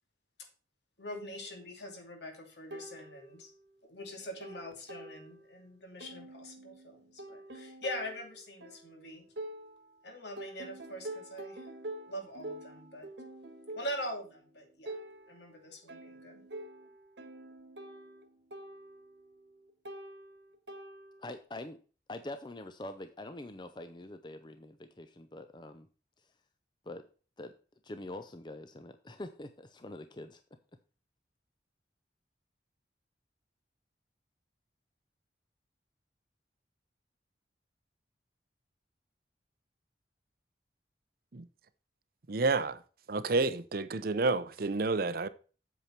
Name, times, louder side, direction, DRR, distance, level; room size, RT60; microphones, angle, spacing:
voice 1, 1.0-3.5 3.8-9.2 10.0-11.6 12.1-13.1 13.8-14.9 15.3-16.4, equal, 70° left, 2.5 m, -43 dB
sound 1, 2.7-3.8 4.1-5.7 6.0-10.0 10.4-21.4, right 1 dB, 75° right, 1.5 m, -47 dB
voice 2, 21.2-21.8 22.1-25.9 26.2-26.3 26.9-27.1 27.4-27.5 27.8-30.4, left 2 dB, 25° left, 0.6 m, -44 dB
voice 3, 42.3-42.8 43.1-45.3, right 3 dB, 55° right, 0.6 m, -29 dB
8.3 x 7.3 x 4.4 m
head